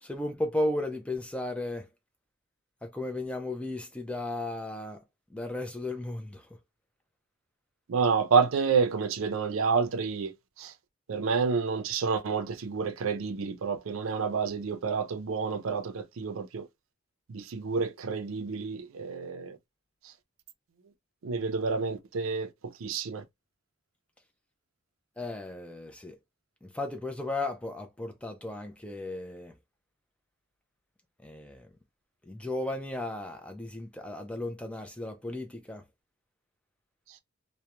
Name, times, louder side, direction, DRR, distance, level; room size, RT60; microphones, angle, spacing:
voice 1, 0.0-1.9 2.8-5.0 5.3-6.5 25.2-26.2 26.6-29.5 31.2-31.7 32.3-35.8, left 1 dB, 5° left, 0.3 m, -35 dB
voice 2, 7.9-10.3 10.6-10.7 11.1-16.7 17.3-19.6 21.2-23.2, right 5 dB, 80° right, 0.5 m, -29 dB
2.2 x 2.1 x 2.9 m
head